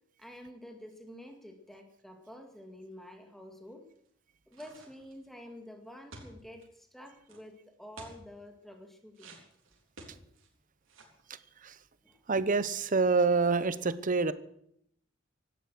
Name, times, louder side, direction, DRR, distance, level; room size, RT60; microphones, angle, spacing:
voice 1, 0.2-3.8 4.5-9.4 12.0-12.2, left 1 dB, ahead, 4 dB, 1.9 m, -49 dB
sound 1, 4.5-5.2 6.1-6.6 7.3-7.4 8.0-8.2 9.1-10.5 10.8-11.2, right 3 dB, 90° right, 3.6 m, -51 dB
voice 2, 12.3-14.3, right 4 dB, 40° right, 14 dB, 0.9 m, -26 dB
16.5 x 11.5 x 6.2 m, 0.70 s
head